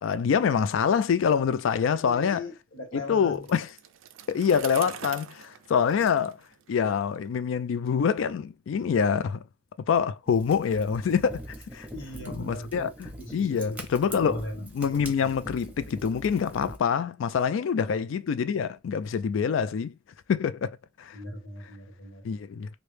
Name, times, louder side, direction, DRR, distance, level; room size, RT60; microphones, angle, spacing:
voice 1, 0.0-2.4 3.0-3.7 4.3-6.4 6.7-9.4 9.9-11.4 11.7-11.9 12.3-20.0 20.3-20.7 21.0-21.2 22.2-22.7, left 6 dB, 75° left, 0.3 m, -26 dB
voice 2, 2.0-3.4 11.9-13.8 14.2-14.6 21.1-22.2, left 1 dB, 90° left, 1.5 m, -39 dB
Bicycle, 3.3-7.2, right 10 dB, 85° right, 0.4 m, -44 dB
Fire, 10.3-16.8, right 1 dB, 10° right, 0.7 m, -43 dB
3.1 x 2.6 x 3.3 m
head